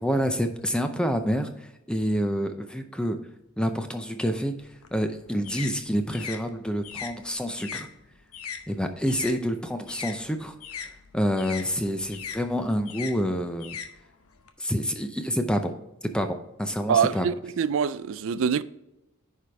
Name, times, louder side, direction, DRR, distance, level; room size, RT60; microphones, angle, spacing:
voice 1, 0.0-3.2 3.6-4.6 4.9-7.9 8.7-10.6 11.1-13.8 14.6-15.8 16.1-17.3, equal, 5° left, 0.5 m, -27 dB
sound 1, 4.6-9.4 9.7-14.5, left 7 dB, 85° left, 0.8 m, -40 dB
voice 2, 16.9-18.6, right 7 dB, 60° right, 0.3 m, -24 dB
10.0 x 4.9 x 3.4 m
head